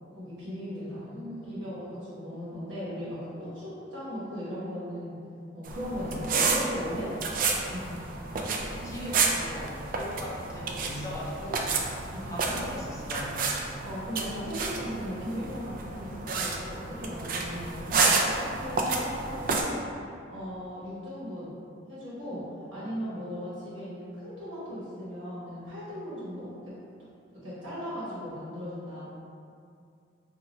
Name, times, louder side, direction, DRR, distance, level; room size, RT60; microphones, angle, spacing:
voice 1, 0.1-1.2 1.5-5.2 5.5-7.1 7.6-8.0 12.1-12.4 13.8-19.8 20.3-21.5 21.9-22.4 22.7-26.7 27.4-29.0, equal, 75° right, -9 dB, 1.3 m, -37 dB
voice 2, 1.1-1.7 8.4-11.7 12.1-13.5 22.8-22.9, equal, 15° left, -6 dB, 0.5 m, -39 dB
sound 1, 5.7-19.6, right 4 dB, 45° right, 0.3 m, -30 dB
2.8 x 2.3 x 4.1 m, 2.4 s
head